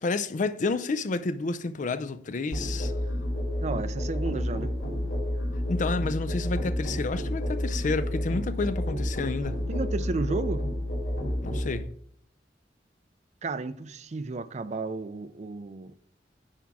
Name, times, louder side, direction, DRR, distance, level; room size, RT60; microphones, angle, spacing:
voice 1, 0.0-2.9 5.7-9.6 11.4-11.9, left 3 dB, 45° left, 0.5 m, -30 dB
Musical instrument, 2.5-11.7, left 1 dB, 90° left, 3.4 m, -30 dB
voice 2, 3.6-4.7 9.7-10.6 13.4-15.9, right 3 dB, 40° right, 0.5 m, -33 dB
10.0 x 3.5 x 6.0 m
head